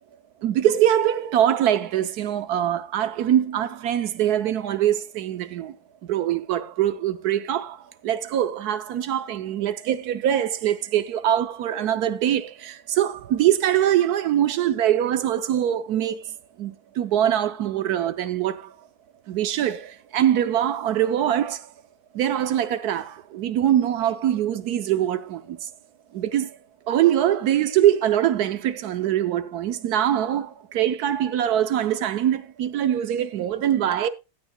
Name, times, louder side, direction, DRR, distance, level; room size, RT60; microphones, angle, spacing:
voice 1, 0.4-5.7 6.0-16.3 16.6-18.7 19.3-21.7 22.1-25.6 26.1-26.6 26.9-34.1, right 11 dB, 70° right, 1.2 m, -23 dB
15.5 x 9.5 x 2.3 m
omnidirectional pair, 1.8 m